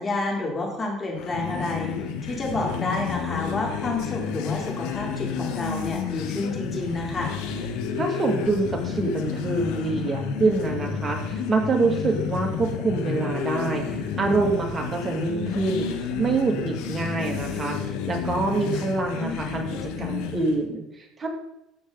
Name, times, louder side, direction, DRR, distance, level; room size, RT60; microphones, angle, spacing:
voice 1, 0.0-1.9 2.2-7.3, left 2 dB, 25° left, 0 dB, 3.6 m, -29 dB
sound 1, 1.1-20.6, left 6 dB, 85° left, 1.5 m, -31 dB
voice 2, 8.0-15.9 16.2-17.8 18.1-21.3, right 3 dB, 25° right, 2 dB, 2.4 m, -26 dB
13.5 x 8.4 x 4.1 m, 0.85 s
cardioid pair, 115°, 0 cm